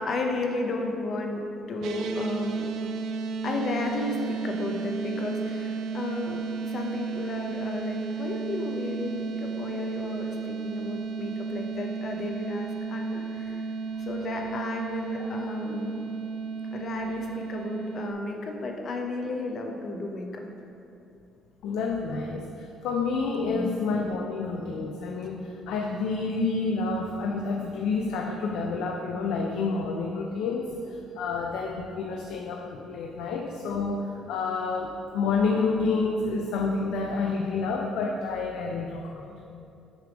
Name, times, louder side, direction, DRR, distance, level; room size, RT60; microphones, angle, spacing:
voice 1, 0.0-1.4 1.7-2.7 3.4-13.6 14.1-16.0 16.7-20.4 23.5-23.7, left 2 dB, 35° left, 2 dB, 0.6 m, -33 dB
sound 1, 1.8-18.1, right 5 dB, 70° right, 0.3 m, -33 dB
voice 2, 21.6-30.7 31.2-39.3, left 4 dB, 90° left, 1 dB, 0.4 m, -29 dB
6.2 x 3.3 x 5.0 m, 2.6 s
cardioid pair, 175°, 0 cm